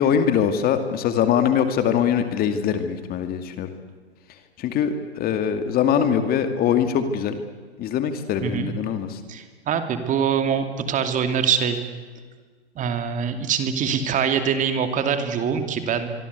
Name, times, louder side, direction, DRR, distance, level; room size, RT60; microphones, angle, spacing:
voice 1, 0.0-3.7 4.6-7.4 7.8-9.2, left 8 dB, 25° left, 8 dB, 2.2 m, -22 dB
voice 2, 9.3-11.8 12.8-16.1, right 7 dB, 20° right, 8 dB, 2.7 m, -24 dB
24.5 x 24.5 x 8.3 m, 1.5 s
hypercardioid pair, 125°, 34 cm